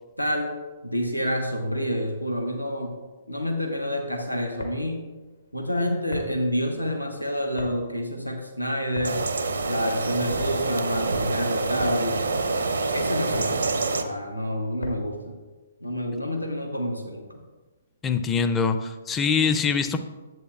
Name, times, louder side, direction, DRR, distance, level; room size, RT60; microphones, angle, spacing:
voice 1, 0.2-0.6 0.8-3.0 3.3-5.0 5.5-9.2 9.7-12.2 12.9-15.4 15.8-17.4, equal, 85° left, 3 dB, 0.9 m, -28 dB
sound 1, 4.6-15.3, left 3 dB, 70° left, 1.4 m, -41 dB
sound 2, 9.0-14.0, right 3 dB, 65° right, 0.6 m, -26 dB
voice 2, 18.0-20.0, left 5 dB, 15° left, 9 dB, 0.5 m, -23 dB
10.5 x 7.9 x 2.3 m, 1.2 s
figure-of-eight pair, 120°, 0 cm